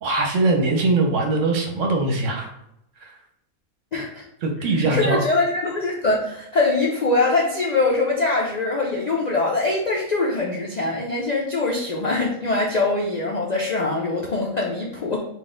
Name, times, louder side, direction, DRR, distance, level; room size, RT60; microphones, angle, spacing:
voice 1, 0.0-2.5 3.0-3.1 4.4-5.2, right 2 dB, 65° right, 2 dB, 1.1 m, -21 dB
voice 2, 3.9-4.2 4.7-15.2, left 2 dB, 60° left, -2 dB, 0.4 m, -23 dB
4.0 x 2.5 x 3.7 m, 0.79 s
omnidirectional pair, 1.5 m